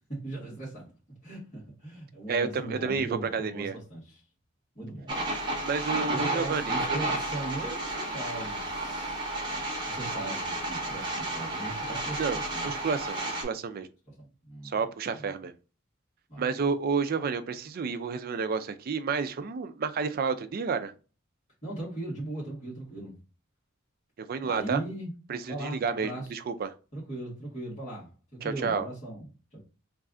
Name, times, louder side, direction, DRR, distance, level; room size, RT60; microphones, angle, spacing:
voice 1, 0.1-0.9 1.2-4.2 4.7-5.2 6.1-9.3 9.9-12.7 14.2-14.8 16.3-16.6 21.6-23.1 24.4-25.1 25.5-26.3 26.9-29.6, right 2 dB, 35° left, 1.6 m, -39 dB
voice 2, 2.3-3.7 5.6-7.0 12.2-13.9 14.6-15.5 16.4-20.9 24.2-24.8 25.3-26.7 28.4-28.9, right 5 dB, 50° right, 0.4 m, -30 dB
sound 1, 5.1-13.4, right 2 dB, 25° right, 0.9 m, -32 dB
3.2 x 2.4 x 3.6 m
head